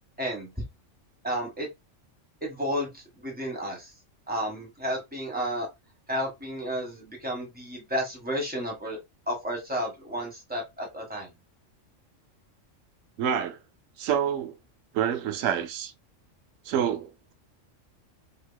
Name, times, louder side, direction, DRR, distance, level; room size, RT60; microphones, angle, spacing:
voice 1, 0.2-0.6 1.2-1.7 2.4-3.9 4.3-5.7 6.1-9.0 9.3-11.3, equal, 5° right, 1.3 m, -32 dB
voice 2, 13.2-13.6 14.0-14.5 14.9-15.9 16.6-17.3, right 9 dB, 85° right, 1.0 m, -27 dB
4.5 x 2.9 x 2.2 m
omnidirectional pair, 1.3 m